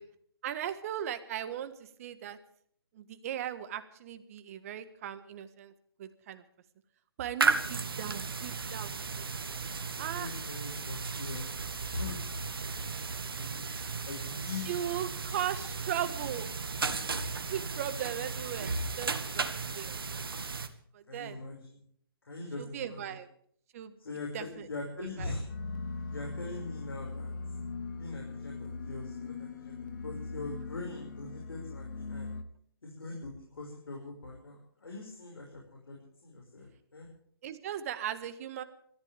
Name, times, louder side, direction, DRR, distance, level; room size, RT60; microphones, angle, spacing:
voice 1, 0.4-2.4 2.9-5.7 6.0-6.4 7.2-9.3 9.6-10.3 13.7-13.9 14.6-16.5 17.5-20.0 20.9-21.4 22.6-23.3 23.7-23.9 24.3-24.7 25.0-25.3 37.4-38.6, right 10 dB, 35° right, 11 dB, 1.6 m, -38 dB
sound 1, 7.4-20.7, right 4 dB, 65° right, 1.7 m, -35 dB
voice 2, 10.2-12.2 13.2-13.7 14.1-14.7 16.7-17.0 21.1-21.8 22.2-23.2 24.0-25.5 26.1-27.3 27.9-32.3 32.8-37.1, left 3 dB, 70° left, -1 dB, 5.7 m, -42 dB
sound 2, 25.5-32.4, left 4 dB, 50° left, 1.5 m, -40 dB
27.0 x 14.5 x 3.5 m, 0.65 s
figure-of-eight pair, 140°, 13 cm